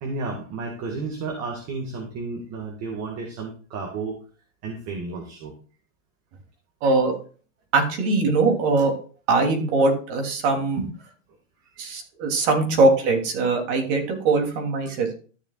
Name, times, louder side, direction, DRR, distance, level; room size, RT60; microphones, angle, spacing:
voice 1, 0.0-4.2 4.6-5.5 11.7-11.9 14.9-15.0, right 3 dB, 40° right, 2 dB, 1.9 m, -32 dB
voice 2, 6.8-7.1 7.7-8.9 9.3-10.9 11.8-15.2, right 3 dB, 60° right, 3 dB, 3.0 m, -21 dB
13.0 x 6.9 x 2.4 m, 0.39 s
hypercardioid pair, 125°, 39 cm